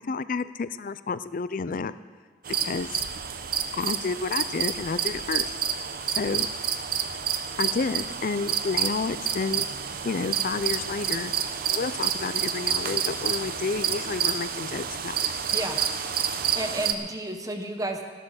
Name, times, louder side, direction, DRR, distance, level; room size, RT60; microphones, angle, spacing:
voice 1, 0.1-1.9 2.6-3.0 3.7-5.5 6.1-6.5 7.6-9.7 10.0-11.3 11.7-15.1, left 4 dB, 45° left, 15 dB, 0.4 m, -30 dB
sound 1, 2.4-16.9, right 8 dB, 50° right, 0.8 m, -29 dB
voice 2, 16.6-18.0, right 1 dB, 20° right, 5 dB, 1.0 m, -31 dB
14.5 x 11.0 x 6.5 m, 1.5 s
head